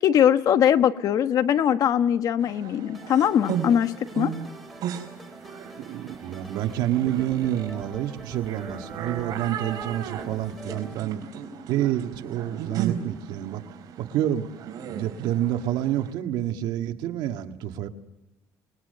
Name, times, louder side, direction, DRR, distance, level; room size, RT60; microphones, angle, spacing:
voice 1, 0.0-4.3, left 9 dB, 55° left, 11 dB, 1.2 m, -21 dB
sound 1, 2.4-16.1, right 8 dB, 60° right, 4.5 m, -36 dB
sound 2, 2.9-10.9, right 1 dB, ahead, 3.1 m, -44 dB
voice 2, 5.8-11.2 11.7-13.6 14.0-14.5 14.8-17.9, right 12 dB, 75° right, 6 dB, 1.8 m, -28 dB
29.5 x 21.0 x 6.8 m, 1.0 s
cardioid pair, 120°, 7 cm